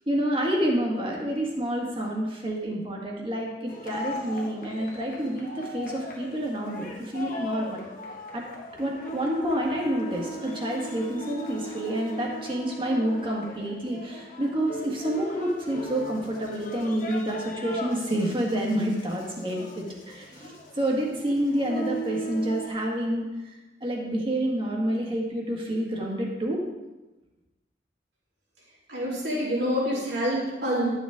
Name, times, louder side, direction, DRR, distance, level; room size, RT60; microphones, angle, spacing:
voice 1, 0.1-7.8 8.3-8.4 8.8-26.6, right 1 dB, 30° right, -1 dB, 1.8 m, -28 dB
sound 1, 3.7-22.7, equal, 45° left, 1.3 m, -39 dB
voice 2, 28.9-30.9, equal, 70° right, -7 dB, 3.8 m, -27 dB
11.5 x 7.3 x 3.7 m, 1.1 s
head